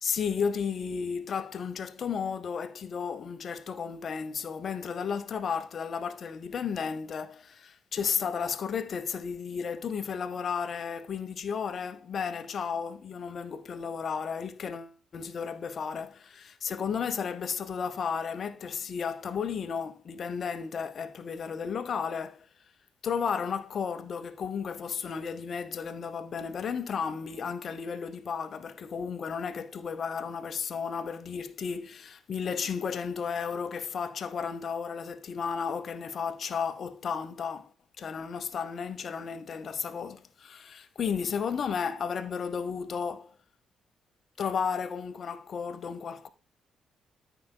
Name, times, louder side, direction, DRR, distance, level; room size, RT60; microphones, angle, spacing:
voice 1, 0.0-22.5 23.0-37.7 38.0-43.4 44.4-46.3, left 6 dB, 50° left, 0.8 m, -33 dB
13.0 x 5.7 x 2.2 m
figure-of-eight pair, 40°, 0 cm